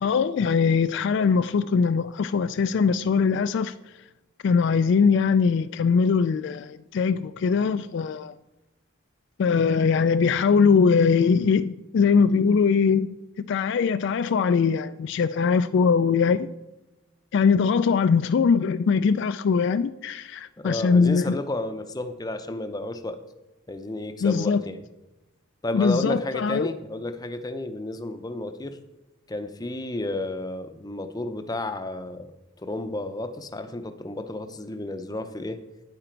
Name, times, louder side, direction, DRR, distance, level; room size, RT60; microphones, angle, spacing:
voice 1, 0.0-3.7 4.4-8.3 9.4-16.5 17.3-21.3 24.2-24.6 25.7-26.7, left 5 dB, 60° left, 0.3 m, -21 dB
voice 2, 20.6-23.2 23.7-24.8 25.6-28.8 29.3-32.3 32.6-35.6, left 2 dB, 20° left, 0.6 m, -32 dB
10.0 x 8.9 x 4.5 m
head